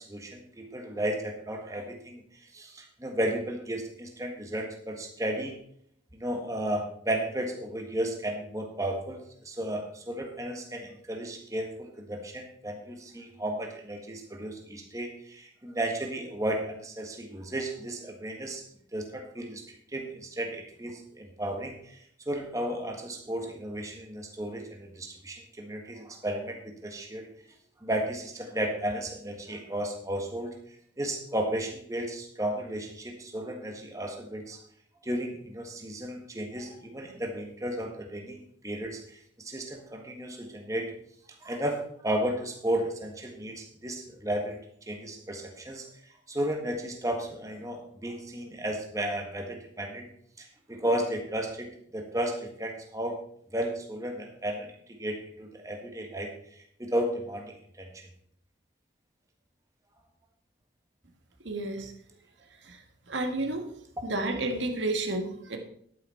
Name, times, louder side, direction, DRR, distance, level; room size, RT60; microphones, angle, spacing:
voice 1, 0.0-5.5 6.1-18.6 18.9-27.3 27.8-30.5 31.0-34.6 35.0-40.9 41.4-44.6 44.9-50.1 50.4-53.2 53.5-54.7 55.0-58.1, right 1 dB, 20° right, 2 dB, 1.6 m, -34 dB
voice 2, 61.5-61.9 62.6-62.8 63.1-63.6 64.0-65.6, right 2 dB, 80° right, 4 dB, 1.7 m, -31 dB
10.5 x 9.6 x 4.4 m, 0.65 s
head